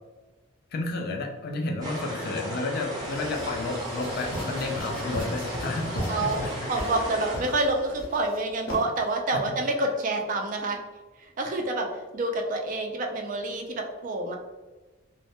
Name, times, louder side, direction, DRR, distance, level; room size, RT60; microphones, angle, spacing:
voice 1, 0.7-6.7 9.3-9.4, left 2 dB, 45° left, 2 dB, 0.3 m, -31 dB
sound 1, 1.8-7.4, equal, 20° right, 0.7 m, -35 dB
sound 2, 2.9-8.3, equal, 15° left, 0.6 m, -44 dB
sound 3, 4.0-7.0 7.3-7.6 8.0-8.4 8.7-8.8, equal, 65° left, 0.7 m, -36 dB
voice 2, 6.1-6.4 6.7-10.8 11.4-11.9 12.1-14.4, right 2 dB, 40° right, 3 dB, 0.3 m, -27 dB
2.1 x 2.1 x 2.8 m, 1.2 s
head